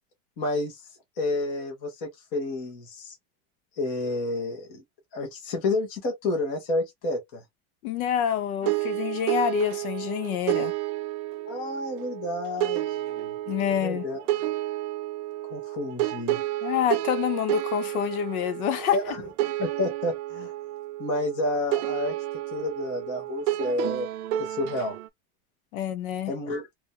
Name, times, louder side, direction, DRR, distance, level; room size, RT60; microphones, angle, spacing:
voice 1, 0.4-0.8 1.2-3.2 3.8-4.8 5.1-7.4 11.5-13.3 13.7-14.2 15.5-16.4 18.9-19.2 19.6-20.5 21.0-22.1 22.5-24.1 24.4-25.0 26.3-26.7, left 2 dB, 20° left, 0.4 m, -30 dB
voice 2, 7.8-10.7 13.5-14.0 16.6-19.0 25.7-26.3, left 9 dB, 70° left, 0.7 m, -27 dB
sound 1, 8.6-25.1, right 15 dB, 70° right, 0.5 m, -31 dB
2.4 x 2.1 x 2.6 m
supercardioid pair, 175°, 45 cm